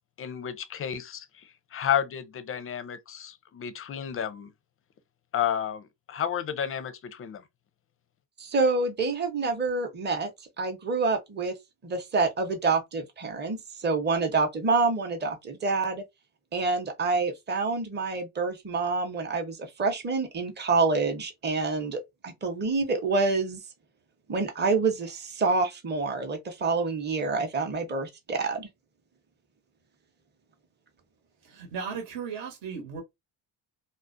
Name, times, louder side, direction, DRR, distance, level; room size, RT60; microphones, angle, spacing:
voice 1, 0.2-1.2 1.7-4.5 5.3-7.4, left 9 dB, 30° left, 0.4 m, -31 dB
voice 2, 8.4-10.3 10.6-11.5 11.8-16.0 16.5-23.6 24.3-28.7, right 4 dB, 20° right, 0.8 m, -27 dB
voice 3, 31.5-33.0, right 6 dB, 60° right, 1.1 m, -36 dB
2.4 x 2.1 x 2.5 m
supercardioid pair, 75°, 49 cm